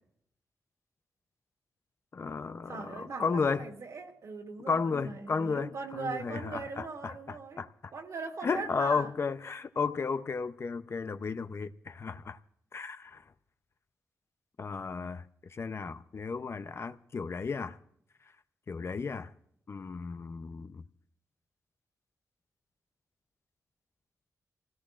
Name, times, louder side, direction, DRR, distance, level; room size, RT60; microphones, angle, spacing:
voice 1, 2.1-3.7 4.7-7.1 7.6-7.7 8.4-12.4 12.7-13.2 14.6-15.2 15.5-17.8 18.7-19.3 19.7-20.8, left 5 dB, 45° left, 0.6 m, -33 dB
voice 2, 2.7-7.6 7.9-9.1, right 4 dB, 65° right, 2.3 m, -40 dB
27.0 x 17.0 x 2.5 m
wide cardioid pair, 100°, 6 cm